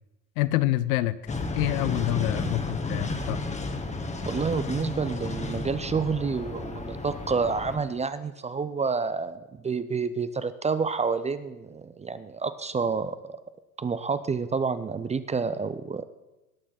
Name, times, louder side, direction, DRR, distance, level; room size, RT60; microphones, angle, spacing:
voice 1, 0.4-1.2 1.6-3.4, left 16 dB, 70° left, 16 dB, 0.8 m, -27 dB
sound 1, 1.3-7.8, left 3 dB, 15° left, 1.4 m, -32 dB
voice 2, 4.3-13.4 13.8-16.0, right 5 dB, 15° right, 13 dB, 0.5 m, -29 dB
17.5 x 6.4 x 5.7 m, 1.0 s
hypercardioid pair, 75°, 44 cm